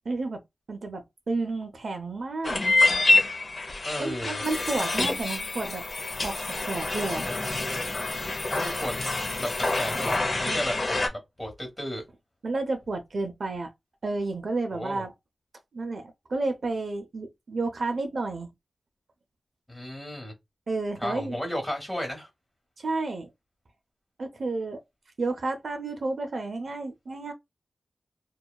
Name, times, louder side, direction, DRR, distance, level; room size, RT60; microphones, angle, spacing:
voice 1, 0.1-0.4 0.7-2.6 4.0-5.8 6.2-6.4 6.7-7.3 10.5-10.6 12.4-13.7 14.0-15.1 15.7-18.5 20.7-21.4 22.8-23.3 24.2-24.8 25.2-27.3, right 3 dB, 60° right, 0.5 m, -31 dB
sound 1, 2.4-11.1, left 2 dB, 45° left, 0.6 m, -27 dB
voice 2, 3.8-4.4 8.5-9.0 9.4-12.1 14.7-15.0 19.7-20.3 21.0-22.3, equal, 5° left, 1.1 m, -34 dB
sound 2, 4.4-10.2, left 3 dB, 85° left, 0.8 m, -40 dB
2.7 x 2.3 x 2.2 m
wide cardioid pair, 125°, 0 cm